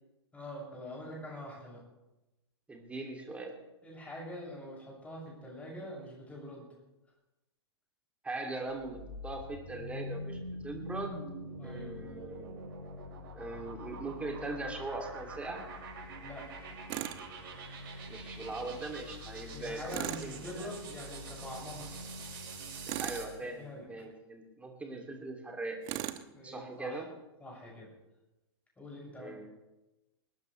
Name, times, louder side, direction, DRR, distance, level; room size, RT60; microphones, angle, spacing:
voice 1, 0.3-1.8 3.8-6.7 11.6-11.9 16.2-16.7 18.4-18.5 19.5-21.9 23.4-23.9 26.3-27.0 27.4-27.9 28.8-29.3, left 1 dB, 10° left, -3 dB, 6.9 m, -44 dB
voice 2, 2.7-3.5 8.2-11.3 11.6-12.6 13.3-15.6 18.1-20.7 23.0-25.8 26.4-27.1 29.1-29.5, right 2 dB, 10° right, 2 dB, 2.9 m, -40 dB
sound 1, 8.7-23.4, equal, 55° right, 6.1 m, -44 dB
Tools, 16.9-17.2 19.9-20.3 22.8-23.3 25.8-26.3, right 14 dB, 35° right, 1.0 m, -37 dB
21.5 x 19.0 x 3.4 m, 1.0 s
figure-of-eight pair, 110°, 14 cm